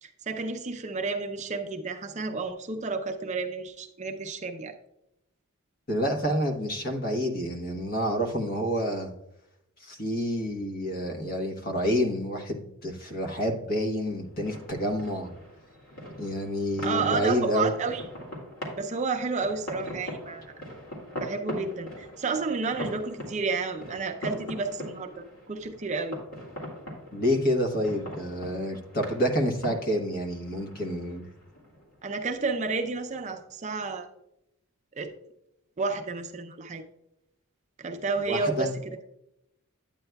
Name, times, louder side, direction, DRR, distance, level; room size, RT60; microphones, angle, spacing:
voice 1, 0.0-4.8 16.8-18.0 18.8-20.4 21.1-26.2 32.0-34.1 35.0-35.1 35.8-36.8 37.8-39.0, right 4 dB, 35° right, 5 dB, 0.5 m, -31 dB
voice 2, 5.9-9.1 9.8-15.3 16.2-17.7 27.1-31.3 38.3-38.7, equal, 45° left, 3 dB, 1.1 m, -28 dB
sound 1, 14.0-33.3, equal, 85° left, 2.2 m, -41 dB
9.0 x 8.7 x 2.3 m, 0.83 s
head